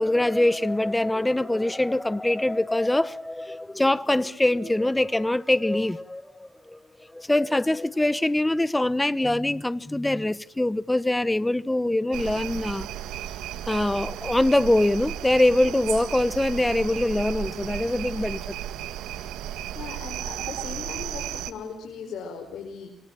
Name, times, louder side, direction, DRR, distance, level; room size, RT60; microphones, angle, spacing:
voice 1, 0.0-6.8 7.1-12.9 13.7-18.5, left 1 dB, 10° left, 1.2 m, -23 dB
sound 1, 12.1-21.5, right 11 dB, 90° right, 1.7 m, -34 dB
voice 2, 19.7-22.9, left 6 dB, 70° left, 5.2 m, -38 dB
27.5 x 24.0 x 9.0 m
cardioid pair, 90°, 0 cm